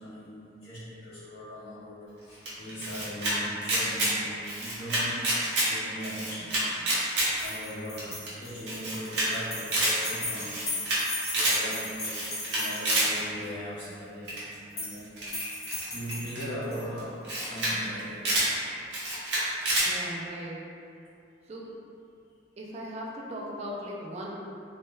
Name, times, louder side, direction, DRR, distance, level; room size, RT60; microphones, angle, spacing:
voice 1, 0.0-6.7 7.3-15.1 15.9-18.2, equal, 60° left, -14 dB, 0.8 m, -40 dB
Camera, 2.5-3.3 3.6-4.1 4.4-5.7 6.0-7.3 7.6-7.7 8.0-8.1 8.3-8.4 8.7-9.3 9.6-9.9 10.3-11.0 11.3-11.6 12.0-13.1 14.3-14.5 15.2-16.4 17.0-17.1 17.2-17.7 18.0-18.5 18.9-19.9, right 1 dB, 70° right, 0.8 m, -28 dB
sound 1, 7.3-13.4 14.5-15.0 15.3-16.8, left 2 dB, 35° left, 1.0 m, -37 dB
voice 2, 19.8-20.6 21.5-21.7 22.6-24.3, equal, 35° right, -3 dB, 0.4 m, -38 dB
2.8 x 2.2 x 3.1 m, 2.5 s
head